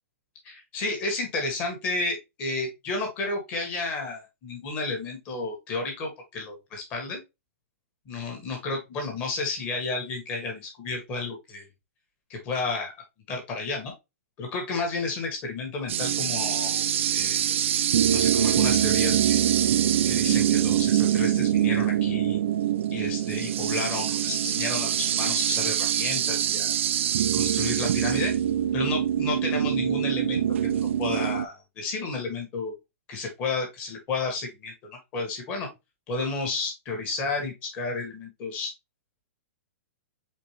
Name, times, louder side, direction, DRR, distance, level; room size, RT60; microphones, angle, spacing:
voice 1, 0.4-7.2 8.1-11.6 12.3-12.9 13.3-13.9 14.4-16.9 17.1-17.4 18.1-19.5 20.0-22.4 22.9-26.7 27.3-28.3 28.7-32.7 33.1-35.7 36.1-38.7, left 3 dB, 20° left, 2 dB, 1.3 m, -32 dB
sound 1, 15.9-31.5, right 10 dB, 55° right, 0.4 m, -24 dB
4.4 x 3.7 x 3.0 m, 0.22 s
hypercardioid pair, 175°, 8 cm